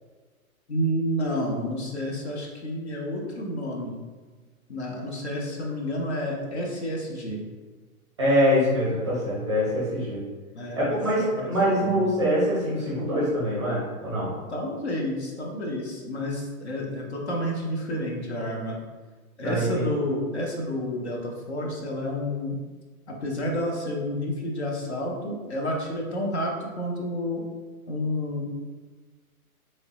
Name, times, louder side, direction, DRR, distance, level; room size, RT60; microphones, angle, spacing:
voice 1, 0.7-4.0 4.7-7.4 10.5-11.3 11.7-12.1 14.5-18.8 19.4-22.6 23.1-27.4 27.9-28.5, left 1 dB, 50° left, -1 dB, 0.6 m, -30 dB
voice 2, 8.2-10.2 10.8-14.3 19.4-19.9, equal, 20° right, -8 dB, 0.6 m, -24 dB
3.1 x 3.1 x 2.8 m, 1.4 s
hypercardioid pair, 175°, 44 cm